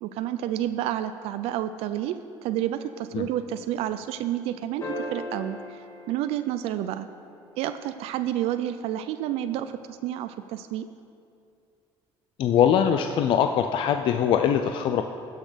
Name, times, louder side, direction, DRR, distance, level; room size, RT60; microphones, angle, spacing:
voice 1, 0.0-5.6 6.1-7.1 7.6-10.9, right 12 dB, 80° right, 10 dB, 0.5 m, -30 dB
sound 1, 4.8-7.3 9.6-9.7, left 1 dB, 30° left, 2.3 m, -38 dB
voice 2, 12.4-15.0, left 8 dB, 60° left, 7 dB, 0.5 m, -22 dB
16.0 x 6.4 x 5.1 m, 2.4 s
cardioid pair, 125°, 10 cm